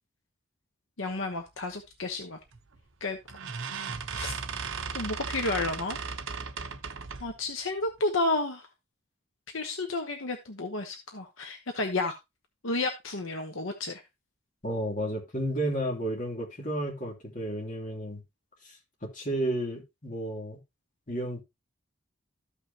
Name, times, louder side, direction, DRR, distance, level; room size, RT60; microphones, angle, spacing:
voice 1, 1.0-2.4 3.0-3.2 4.1-4.3 4.9-6.0 7.2-8.6 9.5-12.1 12.6-14.0, left 2 dB, 75° left, 1.1 m, -31 dB
sound 1, 2.5-2.8 3.3-7.4, right 5 dB, 70° right, 0.9 m, -36 dB
voice 2, 14.6-18.2 19.1-20.6 21.1-21.4, right 1 dB, 40° left, 2.9 m, -32 dB
14.0 x 5.6 x 2.9 m
head